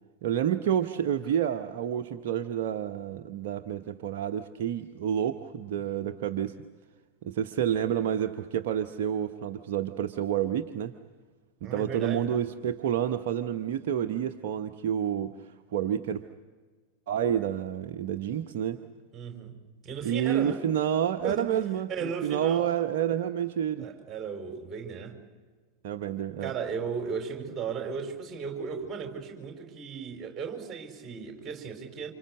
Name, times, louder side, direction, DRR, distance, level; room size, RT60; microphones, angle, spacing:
voice 1, 0.2-6.6 7.2-10.9 11.6-15.3 15.7-16.2 17.1-18.8 20.0-23.9 25.8-26.5, right 9 dB, 50° right, 6 dB, 1.0 m, -29 dB
voice 2, 11.6-12.4 19.1-19.6 19.8-20.6 21.2-21.6 21.9-22.7 23.8-25.2 26.4-32.1, right 6 dB, 20° right, 3 dB, 5.1 m, -36 dB
29.5 x 27.5 x 6.5 m, 1.4 s
figure-of-eight pair, 90°, 0 cm